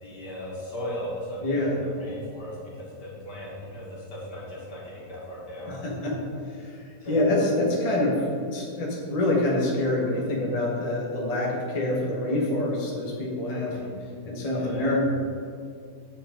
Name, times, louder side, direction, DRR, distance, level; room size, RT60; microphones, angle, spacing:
voice 1, 0.0-1.7 2.0-5.8 7.0-7.1 13.6-13.9 14.5-14.9, equal, 80° left, -6 dB, 2.6 m, -37 dB
voice 2, 1.4-1.8 5.7-6.2 6.6-13.8 14.2-15.0, left 1 dB, 25° left, -3 dB, 1.2 m, -26 dB
8.6 x 7.7 x 3.8 m, 2.4 s
omnidirectional pair, 1.8 m